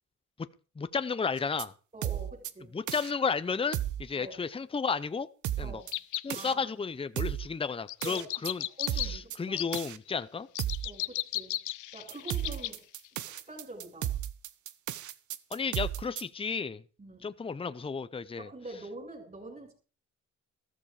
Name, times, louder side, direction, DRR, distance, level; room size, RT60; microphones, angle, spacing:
voice 1, 0.8-1.7 2.7-5.3 5.6-5.8 6.2-8.6 8.9-10.5 15.5-16.8 17.2-18.5, left 5 dB, 20° left, 0.7 m, -33 dB
sound 1, 1.4-1.6 2.0-2.5 2.9-3.1 3.7-4.0 5.4-5.9 6.3-6.5 7.2-7.5 8.0-8.5 8.9-9.4 9.7-10.0 10.6-10.9 12.1-16.2, right 12 dB, 75° right, 1.0 m, -34 dB
voice 2, 1.9-2.7 4.2-4.4 5.6-5.9 6.3-6.7 8.0-8.3 8.8-9.7 10.8-11.6 11.9-12.8 13.3-14.1 17.0-17.3 18.4-19.7, right 2 dB, 25° right, 7.3 m, -45 dB
sound 2, 5.9-6.3 7.9-9.1 9.6-9.8 10.6-12.7 13.0-13.1, left 16 dB, 75° left, 0.6 m, -34 dB
14.0 x 13.5 x 4.9 m
cardioid pair, 90°, 30 cm